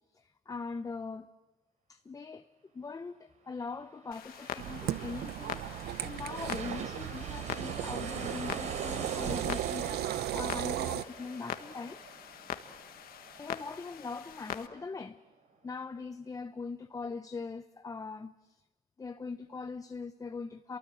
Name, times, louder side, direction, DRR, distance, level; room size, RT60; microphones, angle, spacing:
voice 1, 0.1-1.3 1.9-2.5 2.7-12.1 13.4-15.2 15.6-18.6 19.0-20.8, left 4 dB, 20° left, 0.8 m, -41 dB
sound 1, 3.8-15.2 15.5-15.6, right 4 dB, 45° right, 3.6 m, -45 dB
Clock, 4.1-14.7, left 10 dB, 65° left, 1.6 m, -44 dB
sound 2, 4.6-11.0, right 13 dB, 70° right, 0.8 m, -36 dB
28.5 x 23.5 x 7.8 m
cardioid pair, 110°, 17 cm